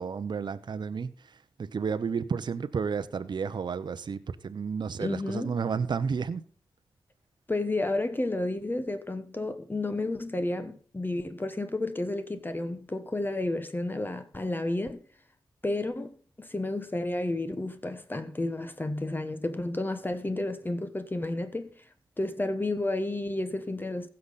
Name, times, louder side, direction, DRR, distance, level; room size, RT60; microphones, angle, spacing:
voice 1, 0.0-6.4, right 6 dB, 60° right, 0.7 m, -32 dB
voice 2, 5.0-5.6 7.5-15.0 15.6-21.7 22.2-24.1, left 2 dB, 25° left, 1.1 m, -31 dB
16.0 x 6.7 x 4.1 m
cardioid pair, 50°, 9 cm